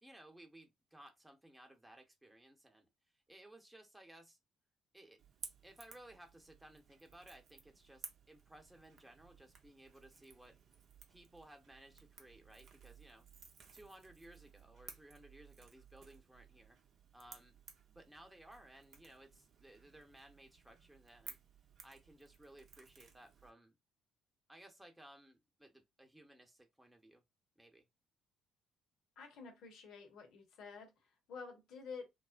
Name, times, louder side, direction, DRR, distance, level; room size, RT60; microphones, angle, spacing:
voice 1, 0.0-2.9 3.1-4.4 4.9-5.2 5.6-10.6 11.1-13.3 13.7-16.8 17.1-17.6 17.9-21.4 21.8-23.8 24.5-27.2 27.6-27.9, right 1 dB, 10° right, 0.9 m, -59 dB
Crackle / Crack, 5.2-23.5, right 6 dB, 50° right, 0.6 m, -58 dB
voice 2, 29.2-32.1, left 5 dB, 60° left, 0.9 m, -50 dB
3.0 x 2.1 x 2.4 m
figure-of-eight pair, 50°, 0 cm